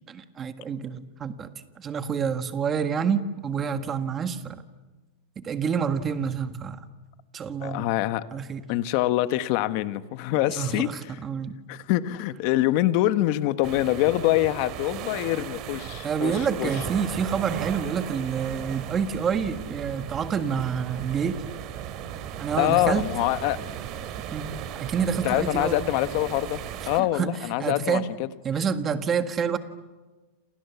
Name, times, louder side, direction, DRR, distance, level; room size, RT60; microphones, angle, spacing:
voice 1, 0.1-1.5 1.8-4.6 5.4-6.8 7.3-7.9 8.3-8.6 10.3-11.6 16.0-21.4 22.4-23.1 24.3-25.8 26.9-27.3 27.6-28.1 28.4-29.6, right 6 dB, 20° right, 9 dB, 1.6 m, -28 dB
voice 2, 7.6-8.2 8.7-10.9 11.7-16.7 22.6-23.6 25.2-28.3, left 15 dB, 45° left, 12 dB, 1.3 m, -25 dB
sound 1, 13.6-27.0, right 9 dB, 35° right, 2.4 m, -36 dB
29.0 x 28.5 x 7.1 m, 1.2 s
supercardioid pair, 170°, 0 cm